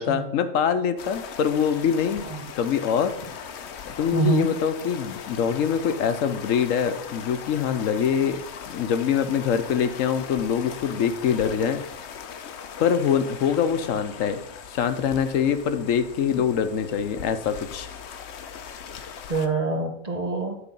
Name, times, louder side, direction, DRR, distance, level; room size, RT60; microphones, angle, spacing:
voice 1, 0.0-2.3 2.5-3.5 3.9-11.8 12.8-14.4 14.7-17.9, left 7 dB, 85° left, 10 dB, 1.1 m, -24 dB
sound 1, 1.0-19.5, left 7 dB, 65° left, 0.9 m, -40 dB
voice 2, 4.1-4.5 16.4-16.5 19.3-20.6, right 3 dB, 35° right, 4 dB, 0.9 m, -25 dB
9.9 x 4.3 x 5.4 m, 0.79 s
omnidirectional pair, 1.3 m